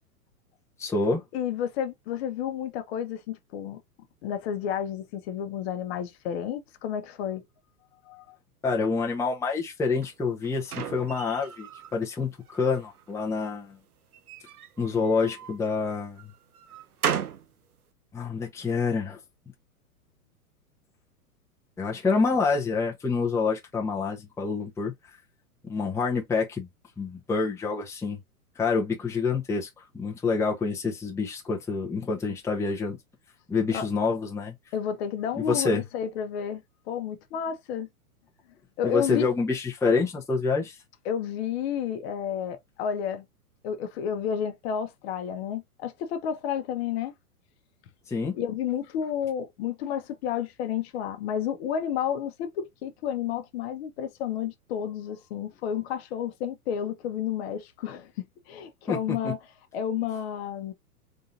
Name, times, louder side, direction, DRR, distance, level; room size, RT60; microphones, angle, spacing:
voice 1, 0.8-1.2 8.6-13.8 14.8-16.2 18.1-19.2 21.8-24.9 25.6-26.7 27.0-28.2 28.6-33.0 33.5-34.5 35.4-35.8 38.8-40.8 48.1-48.3 58.9-59.3, left 4 dB, 5° left, 0.9 m, -27 dB
voice 2, 1.3-3.8 4.2-7.4 8.1-8.3 33.7-33.9 34.7-37.9 38.8-39.3 41.0-43.2 43.6-47.1 48.3-59.4 59.7-60.7, left 8 dB, 45° left, 1.0 m, -31 dB
sound 1, 10.0-11.9 12.4-13.1 14.1-15.6 16.2-17.5, right 8 dB, 70° right, 0.9 m, -35 dB
3.8 x 3.8 x 2.6 m
figure-of-eight pair, 105°, 45 cm